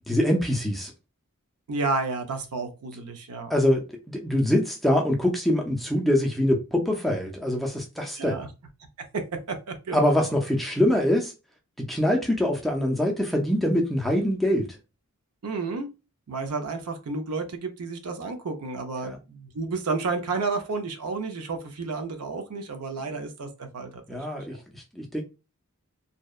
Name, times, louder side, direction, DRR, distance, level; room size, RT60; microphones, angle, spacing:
voice 1, 0.1-0.9 3.5-8.5 9.9-11.3 11.8-14.7 19.0-19.2 24.1-25.2, left 1 dB, ahead, 0.3 m, -24 dB
voice 2, 1.7-3.5 8.2-8.5 9.1-9.2 9.5-10.0 15.4-15.9 16.3-24.5, right 3 dB, 85° right, 0.5 m, -31 dB
2.7 x 2.1 x 2.3 m
head